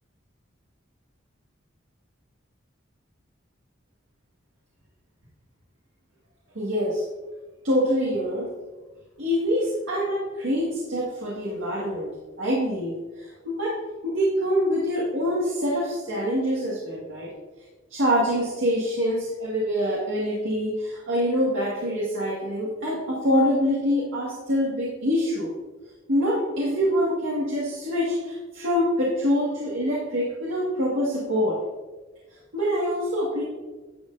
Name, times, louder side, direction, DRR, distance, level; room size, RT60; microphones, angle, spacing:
voice 1, 6.6-7.0 7.6-8.5 9.2-12.1 12.4-17.3 17.9-25.5 26.1-31.6 32.5-33.4, equal, 80° right, -6 dB, 2.0 m, -25 dB
11.0 x 7.8 x 2.7 m, 1.3 s
head